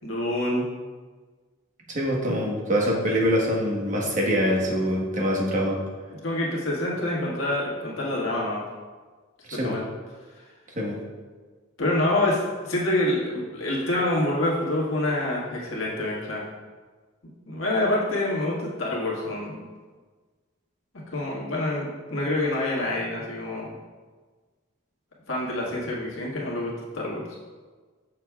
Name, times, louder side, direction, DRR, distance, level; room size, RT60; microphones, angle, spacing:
voice 1, 0.0-0.7 6.2-8.6 9.5-9.8 11.8-16.4 17.5-19.6 21.1-23.7 25.3-27.2, left 1 dB, 85° left, -4 dB, 1.6 m, -26 dB
voice 2, 1.9-5.8 9.5-9.8 10.8-11.0, equal, 40° right, -2 dB, 1.3 m, -24 dB
7.0 x 6.5 x 2.3 m, 1.4 s
head